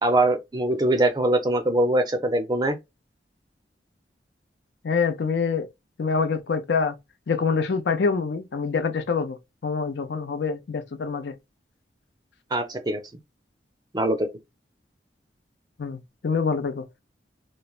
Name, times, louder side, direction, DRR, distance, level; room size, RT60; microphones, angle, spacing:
voice 1, 0.0-2.8 12.5-13.0 13.9-14.3, right 1 dB, 25° right, 0.5 m, -22 dB
voice 2, 4.8-5.7 6.0-6.9 7.3-9.4 9.6-11.3 15.8-16.0 16.2-16.8, left 5 dB, 75° left, 0.5 m, -25 dB
3.1 x 2.0 x 2.3 m
head